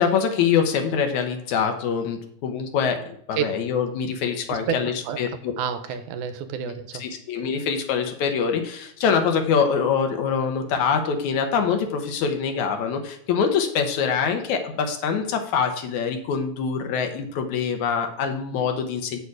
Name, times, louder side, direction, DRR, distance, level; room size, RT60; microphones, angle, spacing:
voice 1, 0.0-5.5 6.9-19.2, left 6 dB, 75° left, 5 dB, 2.3 m, -24 dB
voice 2, 5.6-7.0, right 8 dB, 85° right, 9 dB, 2.2 m, -29 dB
8.2 x 7.0 x 4.8 m, 0.68 s
omnidirectional pair, 3.5 m